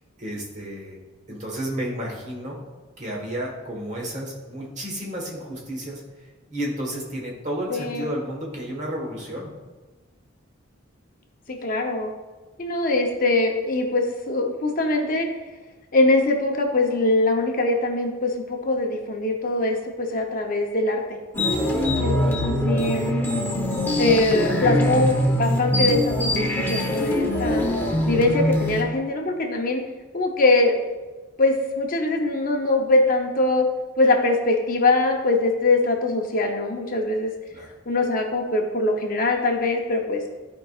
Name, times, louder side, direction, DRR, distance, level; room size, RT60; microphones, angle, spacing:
voice 1, 0.2-1.0 1.3-2.6 3.0-6.0 6.5-9.5 37.5-37.7, equal, 35° right, -1 dB, 1.4 m, -31 dB
voice 2, 7.7-8.1 11.5-12.1 12.6-15.3 15.9-21.2 22.0-23.1 24.0-27.6 28.0-29.8 30.1-30.7 31.4-33.7 34.0-37.3 37.9-40.2, left 2 dB, 40° left, 2 dB, 0.7 m, -22 dB
sound 1, 21.3-28.8, left 1 dB, 10° left, 0.8 m, -23 dB
12.5 x 4.7 x 2.4 m, 1.3 s
head